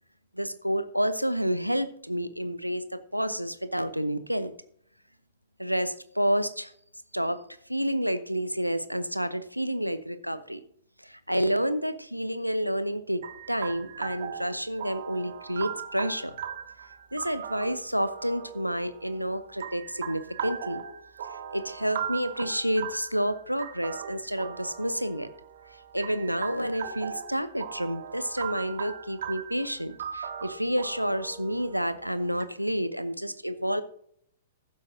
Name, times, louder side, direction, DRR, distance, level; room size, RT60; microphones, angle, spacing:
voice 1, 0.3-4.5 5.6-6.7 7.1-7.4 7.7-10.6 11.0-16.3 17.1-20.8 21.3-25.3 25.9-33.8, equal, 90° right, 13 dB, 0.9 m, -29 dB
sound 1, 13.2-32.4, right 8 dB, 55° right, 1.6 m, -39 dB
15.0 x 11.5 x 2.7 m, 0.64 s
figure-of-eight pair, 110°, 0 cm